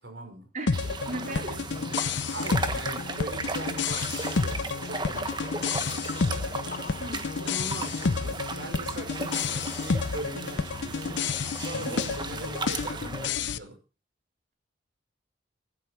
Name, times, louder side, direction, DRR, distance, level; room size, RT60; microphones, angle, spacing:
voice 1, 0.0-0.5 1.3-6.4 7.4-13.8, right 1 dB, 65° right, 5 dB, 5.4 m, -41 dB
sound 1, 0.7-13.6, left 5 dB, 70° left, 0.6 m, -30 dB
sound 2, 0.7-13.3, right 3 dB, 25° right, 1.3 m, -36 dB
voice 2, 1.1-1.6 7.0-7.3, right 2 dB, 40° right, 3 dB, 3.1 m, -36 dB
sound 3, 4.3-9.9, left 5 dB, 45° left, 0.9 m, -46 dB
15.5 x 11.5 x 4.5 m, 0.33 s
head